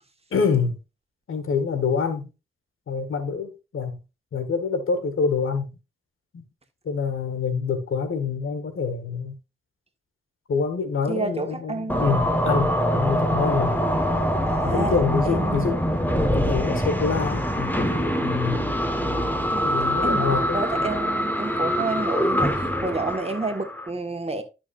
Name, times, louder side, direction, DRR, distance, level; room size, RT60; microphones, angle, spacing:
voice 1, 0.3-0.8 1.3-2.2 2.9-4.0 4.3-5.7 6.3-6.4 6.8-9.3 10.5-13.7 14.6-15.8 16.2-18.6 19.6-20.6, left 5 dB, 90° left, 1.5 m, -26 dB
voice 2, 11.1-12.1 14.5-15.0 15.2-15.8 19.5-19.7 20.0-24.4, right 3 dB, 30° right, 1.7 m, -30 dB
sound 1, 11.9-23.9, equal, 10° left, 1.4 m, -24 dB
11.5 x 6.1 x 2.5 m
cardioid pair, 65°, 21 cm